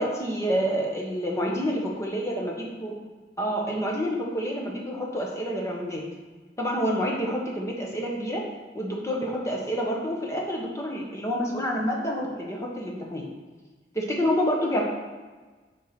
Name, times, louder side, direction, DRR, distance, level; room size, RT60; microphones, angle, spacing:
voice 1, 0.0-3.0 3.4-6.0 6.6-8.4 8.7-13.3 13.9-14.8, equal, 15° left, -2 dB, 1.2 m, -28 dB
6.9 x 4.7 x 6.0 m, 1.3 s
head